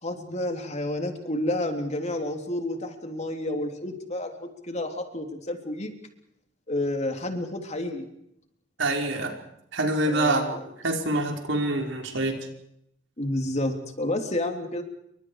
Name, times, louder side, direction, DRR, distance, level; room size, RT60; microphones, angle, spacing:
voice 1, 0.0-5.9 6.7-8.1 10.1-10.6 13.2-14.8, left 1 dB, 35° left, 5 dB, 3.5 m, -30 dB
voice 2, 8.8-9.3 9.7-10.4 10.8-12.4, right 2 dB, 75° right, 2 dB, 5.2 m, -25 dB
29.0 x 25.0 x 4.9 m, 0.76 s
head